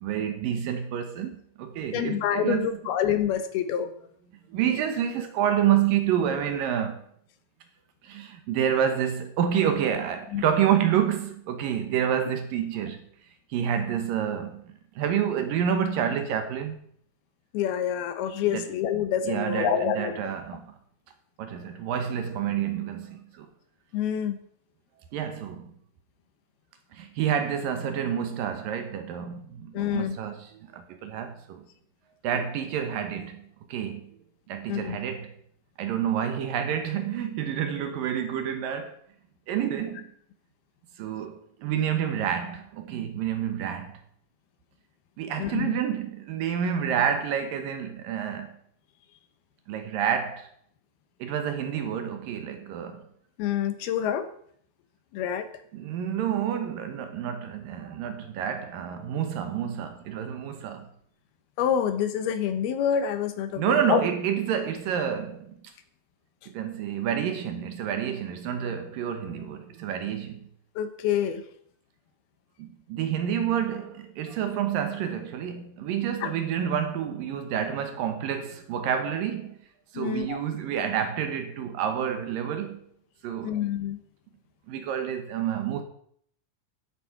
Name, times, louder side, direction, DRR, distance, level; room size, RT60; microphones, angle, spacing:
voice 1, 0.0-2.7 4.5-7.0 8.0-13.1 13.5-14.6 15.0-16.8 18.5-18.6 19.2-20.7 21.4-23.5 25.1-25.7 26.9-31.6 32.2-33.4 33.7-34.1 34.5-35.3 35.8-39.0 39.5-40.0 41.0-44.0 45.2-48.5 49.7-50.5 51.2-53.1 55.7-60.9 63.6-65.6 66.5-70.4 72.6-79.6 79.9-82.8 83.2-83.6 84.7-85.8, right 9 dB, 70° right, 2.6 m, -28 dB
voice 2, 1.9-3.9 10.3-10.4 17.5-20.1 23.9-24.4 29.7-30.2 32.3-32.5 34.7-35.0 45.4-45.8 53.4-54.3 55.1-55.5 61.6-64.0 70.8-71.4 76.2-76.3 79.9-80.4 83.4-84.0, left 9 dB, 80° left, 3.0 m, -27 dB
13.5 x 8.4 x 5.8 m
omnidirectional pair, 4.5 m